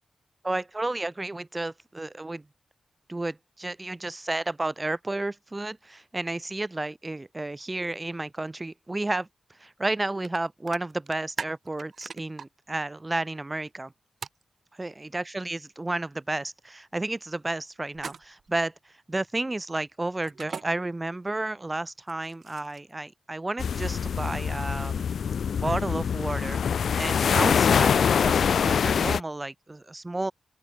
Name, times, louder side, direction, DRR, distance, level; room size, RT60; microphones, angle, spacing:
voice 1, 0.4-2.5 3.1-13.9 14.7-25.1 25.5-26.6 27.0-30.3, right 2 dB, 15° right, 0.9 m, -32 dB
sound 1, 10.2-10.4 10.7-12.5 14.2-14.4 17.9-18.5 20.2-20.6 22.0-22.9, right 5 dB, 45° right, 4.4 m, -38 dB
sound 2, 23.6-29.2, left 7 dB, 65° left, 0.5 m, -24 dB
open air
wide cardioid pair, 180°, 0 cm